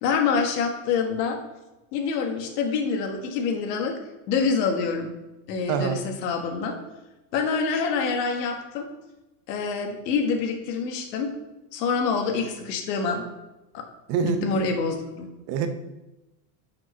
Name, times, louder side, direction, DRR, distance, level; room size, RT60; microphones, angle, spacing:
voice 1, 0.0-1.4 1.9-4.0 4.3-5.1 5.5-6.8 7.3-8.9 9.5-11.3 11.7-13.3 13.7-13.8 14.2-15.3, left 5 dB, 80° left, 3 dB, 1.7 m, -26 dB
voice 2, 5.7-6.0 14.1-14.6 15.5-15.7, right 7 dB, 30° right, 8 dB, 0.6 m, -25 dB
6.4 x 6.4 x 5.6 m, 1.0 s
supercardioid pair, 165°, 49 cm